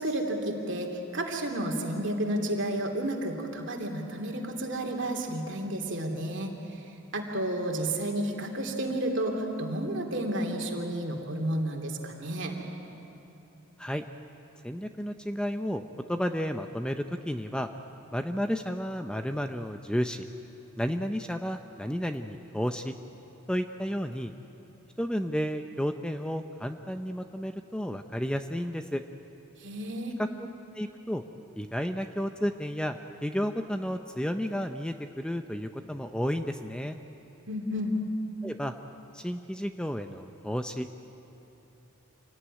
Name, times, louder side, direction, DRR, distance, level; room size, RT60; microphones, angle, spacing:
voice 1, 0.0-6.5 7.1-12.6 29.6-30.2 37.5-38.0, right 1 dB, 60° right, 2 dB, 2.9 m, -31 dB
voice 2, 14.6-15.8 16.1-17.7 18.1-20.3 20.8-22.9 23.5-24.3 25.0-29.0 30.2-30.3 30.7-31.2 31.6-37.0 38.4-38.7 39.1-40.9, equal, 5° left, 7 dB, 0.6 m, -32 dB
26.5 x 17.5 x 9.8 m, 2.9 s
head